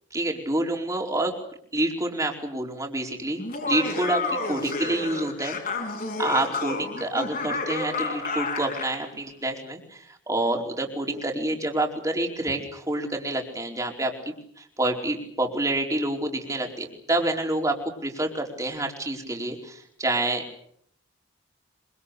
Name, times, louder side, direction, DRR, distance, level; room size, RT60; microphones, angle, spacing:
voice 1, 0.1-1.3 1.7-4.2 4.5-5.6 6.2-20.4, right 1 dB, 15° right, 1 dB, 4.6 m, -28 dB
Laughter, 3.4-9.0, left 3 dB, 45° left, 7.1 m, -30 dB
26.0 x 25.5 x 6.8 m, 0.67 s
head